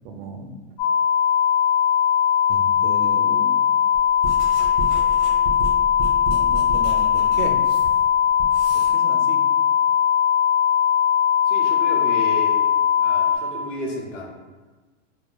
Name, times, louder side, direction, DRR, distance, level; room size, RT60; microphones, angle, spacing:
voice 1, 0.0-0.5 2.5-3.7 6.3-7.6 8.7-9.4, right 3 dB, 65° right, 4 dB, 0.5 m, -35 dB
sound 1, 0.8-13.4, left 8 dB, 40° left, 0.5 m, -19 dB
Writing, 3.9-8.9, right 3 dB, 30° right, 0.7 m, -33 dB
voice 2, 11.5-12.6 13.0-14.3, left 1 dB, 85° left, -1 dB, 0.7 m, -32 dB
2.9 x 2.1 x 2.2 m, 1.3 s
hypercardioid pair, 110°, 36 cm